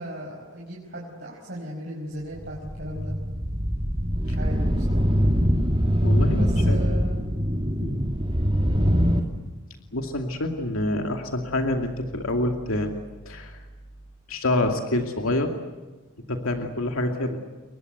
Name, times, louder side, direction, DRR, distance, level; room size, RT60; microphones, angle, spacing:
voice 1, 0.0-3.1 4.2-5.2 6.3-7.3 8.7-9.1, equal, 50° right, -3 dB, 5.5 m, -37 dB
sound 1, 2.3-9.2, equal, 25° right, 2.6 m, -23 dB
voice 2, 6.0-6.8 7.8-8.0 9.9-12.9 13.3-13.6 14.3-15.5 16.3-17.4, left 1 dB, 90° left, 4 dB, 2.5 m, -26 dB
30.0 x 23.0 x 8.1 m, 1.2 s
head